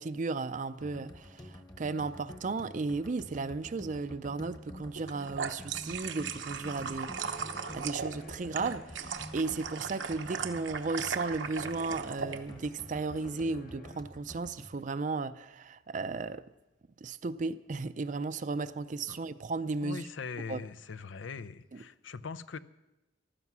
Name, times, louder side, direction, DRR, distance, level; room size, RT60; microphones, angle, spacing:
voice 1, 0.0-7.4 7.7-16.4 17.0-20.0 20.5-20.6, right 3 dB, 40° right, 12 dB, 0.4 m, -35 dB
sound 1, 0.8-14.8, equal, 20° left, 1.1 m, -48 dB
sound 2, 4.9-12.4, right 6 dB, 80° right, 0.9 m, -38 dB
sound 3, 6.0-14.0, left 1 dB, 45° left, 0.9 m, -54 dB
voice 2, 19.8-22.6, left 5 dB, 85° left, 14 dB, 0.6 m, -41 dB
15.0 x 12.0 x 6.1 m, 0.98 s
head